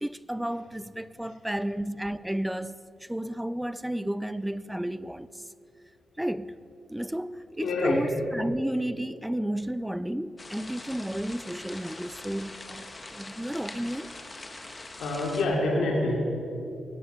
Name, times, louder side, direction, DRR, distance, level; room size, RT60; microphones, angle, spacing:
voice 1, 0.0-5.4 6.2-6.6 6.9-14.1, right 1 dB, 5° right, 0.3 m, -32 dB
voice 2, 7.6-8.0 15.0-16.3, left 2 dB, 90° left, 2.7 m, -26 dB
sound 1, 10.4-15.5, left 2 dB, 20° left, 1.3 m, -43 dB
20.0 x 11.0 x 5.7 m
wide cardioid pair, 120°, 0 cm